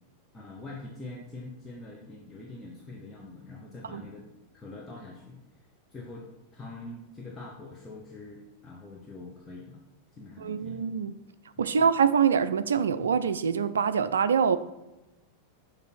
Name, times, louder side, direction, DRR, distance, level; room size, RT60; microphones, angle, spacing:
voice 1, 0.3-4.3 4.5-5.4 5.9-9.8 10.1-10.8 11.6-11.8, left 2 dB, 15° left, -3 dB, 1.0 m, -44 dB
voice 2, 10.4-11.2 11.6-14.6, right 7 dB, 65° right, 13 dB, 0.3 m, -24 dB
6.7 x 3.4 x 5.9 m, 1.0 s
figure-of-eight pair, 90°, 0 cm